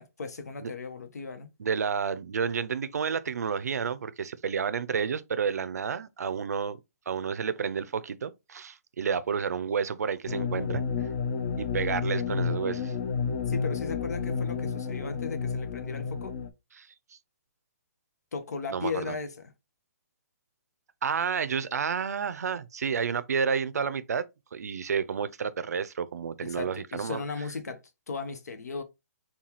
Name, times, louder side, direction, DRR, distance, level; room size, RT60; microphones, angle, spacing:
voice 1, 0.0-1.5 13.5-16.3 18.3-19.5 26.4-28.8, left 4 dB, 85° left, 0.9 m, -37 dB
voice 2, 1.6-6.8 7.1-10.8 11.6-12.9 16.8-16.9 18.7-19.2 21.0-24.2 24.5-27.2, right 6 dB, 80° right, 0.5 m, -30 dB
sound 1, 10.3-16.5, left 5 dB, 45° left, 0.6 m, -31 dB
5.5 x 2.3 x 3.0 m
hypercardioid pair, 155°, 9 cm